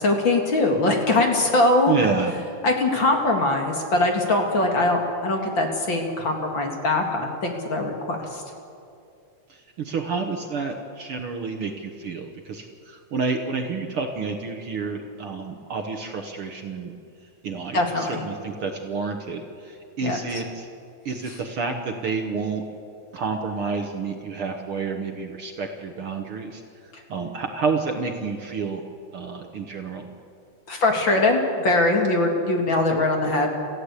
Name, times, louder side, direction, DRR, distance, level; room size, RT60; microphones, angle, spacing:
voice 1, 0.0-1.9 2.6-8.2 17.7-18.2 20.0-20.4 30.7-33.5, left 2 dB, 40° left, 2 dB, 2.7 m, -22 dB
voice 2, 1.9-2.3 9.5-16.9 17.4-20.7 21.1-22.6 23.1-26.6 27.1-28.8 29.1-30.1, right 4 dB, 55° right, 4 dB, 1.8 m, -29 dB
27.5 x 15.0 x 8.3 m, 2.5 s
omnidirectional pair, 3.4 m